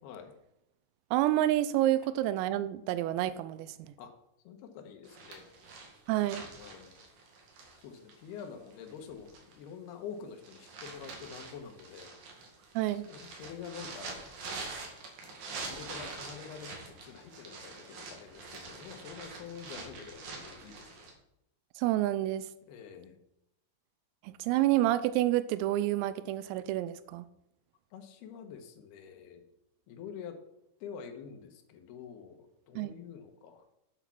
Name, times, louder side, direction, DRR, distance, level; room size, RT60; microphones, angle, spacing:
voice 1, 0.0-0.3 4.0-4.1 4.4-5.4 6.6-6.9 7.8-12.1 13.0-14.3 15.3-21.1 22.7-23.2 27.9-29.5 29.9-30.4 30.8-33.6, left 7 dB, 75° left, 5 dB, 2.5 m, -47 dB
voice 2, 1.1-3.8 6.1-6.4 12.8-13.1 21.8-22.5 24.2-27.3 32.8-32.9, right 14 dB, 90° right, 13 dB, 3.3 m, -28 dB
sound 1, 5.0-9.7 10.2-21.1, right 3 dB, 55° right, 3.0 m, -45 dB
8.9 x 8.3 x 5.8 m, 0.80 s
omnidirectional pair, 5.9 m